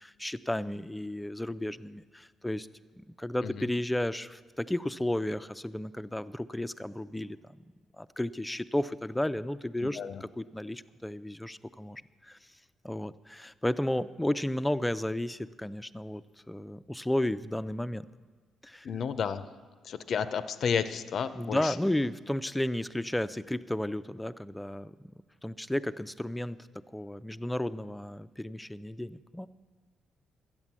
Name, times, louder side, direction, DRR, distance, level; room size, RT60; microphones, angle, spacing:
voice 1, 0.0-2.7 3.0-7.6 8.0-12.4 12.8-16.2 16.5-18.1 18.6-18.9 21.4-25.1 25.4-26.6 26.9-29.5, left 1 dB, 5° left, 13 dB, 0.4 m, -33 dB
voice 2, 9.8-10.2 18.8-19.5 19.8-21.8, left 7 dB, 60° left, 13 dB, 0.5 m, -32 dB
12.5 x 8.9 x 7.3 m, 1.4 s
cardioid pair, 90°, 0 cm